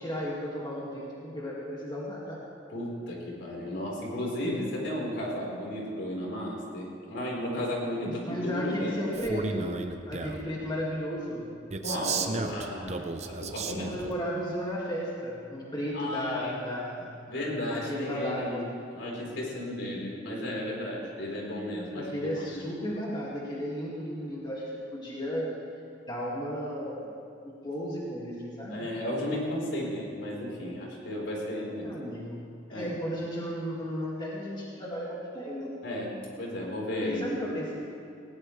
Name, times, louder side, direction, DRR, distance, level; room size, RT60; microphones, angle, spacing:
voice 1, 0.0-2.4 8.0-9.7 10.1-11.5 13.6-17.1 17.7-18.6 21.9-25.5 26.1-27.1 27.4-28.9 31.8-35.7 37.0-37.7, equal, 25° left, -5 dB, 2.1 m, -34 dB
voice 2, 2.7-9.0 11.8-14.0 15.9-16.5 17.3-18.7 18.9-22.6 28.7-31.9 32.7-32.9 35.8-37.2, left 1 dB, 75° left, -3 dB, 4.3 m, -34 dB
Male speech man speaking, 9.1-10.5 11.7-14.1, right 4 dB, 35° right, 0.8 m, -34 dB
19.0 x 18.0 x 3.3 m, 2.6 s
head